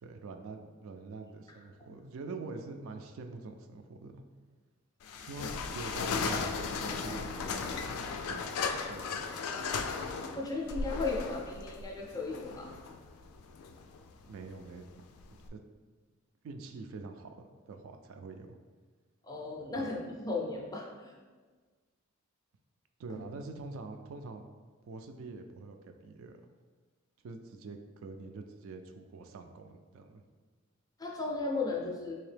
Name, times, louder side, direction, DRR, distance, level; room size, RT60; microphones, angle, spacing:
voice 1, 0.0-4.2 5.2-9.7 14.3-14.9 15.3-15.6 16.4-18.6 19.7-19.9 23.0-24.4 24.8-25.8 26.0-26.5 27.2-30.2, right 3 dB, 65° right, 5 dB, 0.3 m, -45 dB
sound 1, 5.0-15.5, left 5 dB, 85° left, 0.3 m, -36 dB
voice 2, 10.3-12.7 19.2-21.1 31.0-32.1, left 3 dB, 15° left, -1 dB, 0.4 m, -35 dB
3.5 x 2.8 x 3.3 m, 1.4 s
head